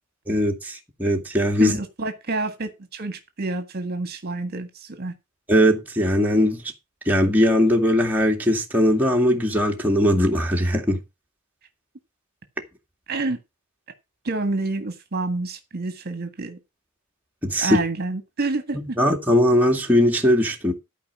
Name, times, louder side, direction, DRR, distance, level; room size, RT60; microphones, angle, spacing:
voice 1, 0.3-1.8 5.5-6.6 7.1-11.0 17.4-17.8 19.0-20.7, equal, 10° right, 2.3 m, -20 dB
voice 2, 1.6-5.1 13.1-13.4 14.2-16.6 17.6-19.0, right 3 dB, 45° right, 1.7 m, -28 dB
13.0 x 4.9 x 7.4 m
head